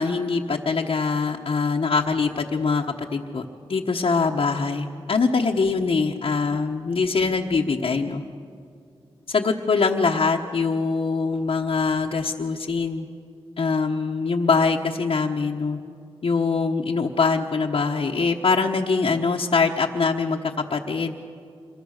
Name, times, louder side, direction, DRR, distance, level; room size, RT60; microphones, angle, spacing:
voice 1, 0.0-2.8 3.1-3.4 3.7-8.2 9.3-13.1 13.6-15.8 16.2-21.1, left 4 dB, 70° left, -2 dB, 1.2 m, -23 dB
26.5 x 23.0 x 6.6 m, 2.4 s
cardioid pair, 55°, 10 cm